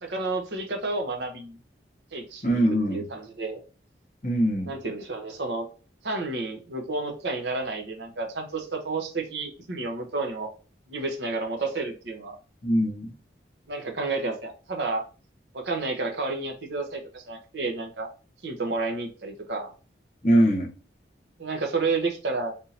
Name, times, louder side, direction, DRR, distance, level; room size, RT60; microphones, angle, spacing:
voice 1, 0.0-1.6 2.1-2.6 2.9-3.6 4.6-5.7 6.0-10.5 10.9-12.4 13.7-15.0 15.5-18.1 18.4-19.7 21.4-22.5, right 3 dB, 75° right, 0.9 m, -31 dB
voice 2, 2.4-3.0 4.2-4.7 12.6-13.1 20.2-20.7, equal, 45° left, 0.9 m, -22 dB
3.6 x 2.7 x 4.2 m
head